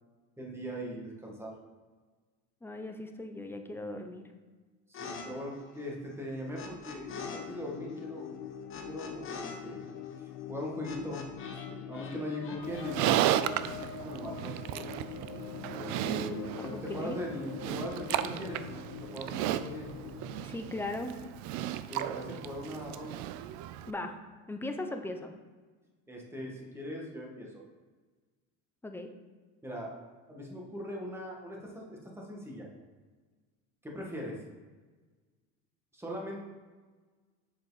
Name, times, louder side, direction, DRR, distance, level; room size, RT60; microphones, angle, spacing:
voice 1, 0.4-1.6 4.9-8.3 8.8-9.9 10.2-13.7 14.0-14.9 15.7-18.6 19.0-19.9 21.9-23.2 26.1-27.6 29.6-32.7 33.8-34.4 35.9-36.4, equal, 10° right, -2 dB, 1.6 m, -40 dB
voice 2, 2.6-4.3 16.1-17.3 20.4-21.2 23.9-24.2 24.5-25.3 28.8-29.1, left 2 dB, 5° left, 5 dB, 0.7 m, -38 dB
sound 1, 4.9-5.3 5.5-7.4 7.7-11.7 11.9-13.1, left 4 dB, 40° left, 1.1 m, -44 dB
sound 2, 7.0-20.5, left 10 dB, 60° left, 0.6 m, -44 dB
Livestock farm animals working animals, 12.6-23.9, right 12 dB, 65° right, 0.4 m, -34 dB
7.4 x 4.7 x 4.1 m, 1.4 s
supercardioid pair, 115°, 31 cm